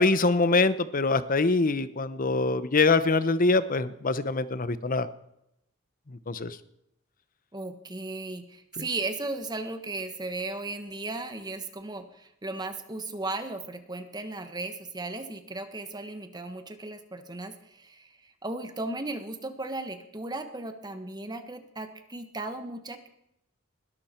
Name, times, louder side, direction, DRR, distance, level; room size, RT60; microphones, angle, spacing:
voice 1, 0.0-5.1 6.3-6.6, left 3 dB, 40° left, 14 dB, 0.9 m, -24 dB
voice 2, 7.5-23.1, right 2 dB, 20° right, 8 dB, 1.4 m, -36 dB
20.5 x 12.5 x 4.5 m, 0.80 s
head